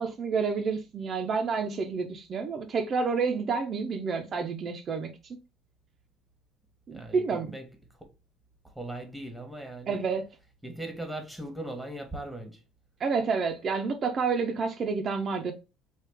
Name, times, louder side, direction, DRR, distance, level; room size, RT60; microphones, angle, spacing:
voice 1, 0.0-5.1 6.9-7.5 9.9-10.3 13.0-15.5, right 5 dB, 45° right, 0.5 m, -29 dB
voice 2, 6.9-7.7 8.8-10.0 10.6-12.6, right 1 dB, ahead, 1.1 m, -39 dB
3.3 x 2.3 x 3.4 m
supercardioid pair, 80°, 0 cm